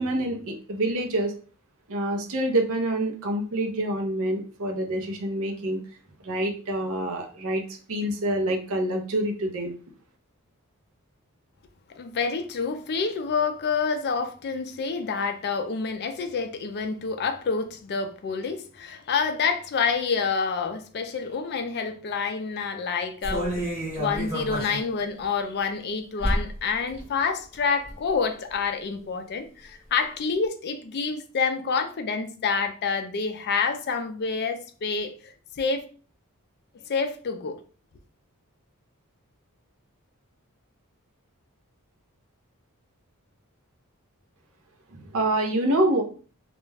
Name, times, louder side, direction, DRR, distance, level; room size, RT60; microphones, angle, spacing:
voice 1, 0.0-1.3 1.9-5.8 6.2-9.8 44.9-46.0, right 1 dB, 65° right, 0.6 m, -26 dB
voice 2, 11.9-23.6 24.0-35.8 36.9-37.6, left 5 dB, 45° left, 0.4 m, -28 dB
sound 1, 23.2-24.9 25.2-25.3 26.2-26.6 26.9-27.0 27.5-28.1 28.5-28.6, equal, 10° right, 1.0 m, -29 dB
2.4 x 2.1 x 3.2 m
head